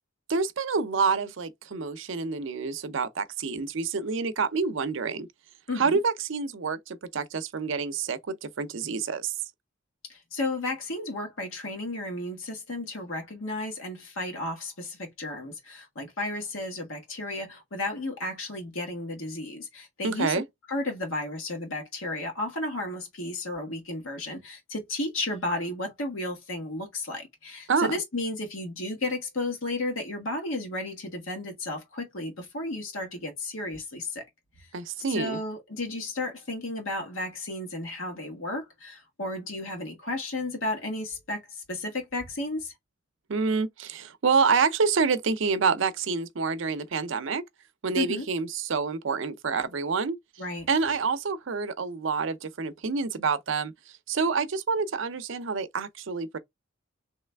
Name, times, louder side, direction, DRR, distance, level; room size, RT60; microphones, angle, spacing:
voice 1, 0.3-5.3 5.8-9.3 20.0-20.4 27.7-28.0 34.7-35.4 43.3-47.4 47.8-50.2 50.7-53.7 54.1-56.4, right 5 dB, 65° right, 0.5 m, -27 dB
voice 2, 5.7-6.0 10.3-20.4 20.7-34.2 35.1-41.4 41.7-42.7 47.9-48.3 50.4-50.7, left 2 dB, 75° left, 1.4 m, -33 dB
3.2 x 2.9 x 3.3 m
head